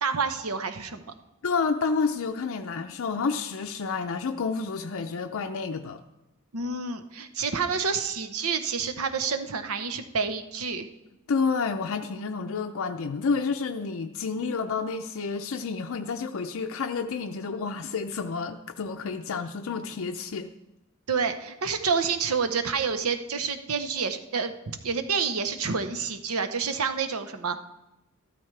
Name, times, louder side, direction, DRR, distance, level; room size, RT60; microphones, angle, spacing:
voice 1, 0.0-1.1 6.5-10.9 21.1-27.6, right 5 dB, 75° right, 0.9 m, -28 dB
voice 2, 1.4-6.0 11.3-20.5, left 5 dB, 65° left, 0.5 m, -29 dB
13.5 x 12.5 x 3.3 m
head